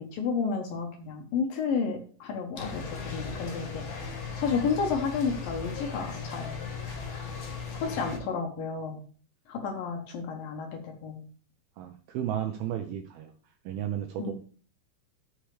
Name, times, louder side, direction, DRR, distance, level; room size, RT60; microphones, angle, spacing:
voice 1, 0.0-6.7 7.1-9.0 9.5-11.3 14.2-14.3, left 5 dB, 65° left, 3 dB, 2.5 m, -32 dB
sound 1, 2.6-8.2, left 5 dB, 45° left, 2.8 m, -37 dB
voice 2, 11.8-13.3 13.7-14.3, right 10 dB, 80° right, 6 dB, 2.2 m, -33 dB
13.0 x 6.7 x 3.3 m, 0.42 s
omnidirectional pair, 5.1 m